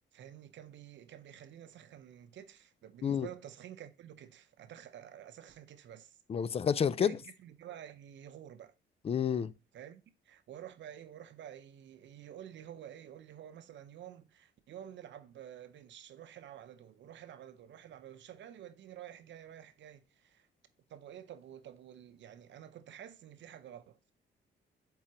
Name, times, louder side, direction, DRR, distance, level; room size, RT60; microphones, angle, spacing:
voice 1, 0.1-6.2 7.0-8.7 9.7-20.5 20.9-24.1, right 10 dB, 65° right, 0.7 m, -50 dB
voice 2, 6.3-7.2 9.0-9.5, left 7 dB, 30° left, 0.4 m, -29 dB
8.5 x 3.8 x 2.9 m
cardioid pair, 90°, 20 cm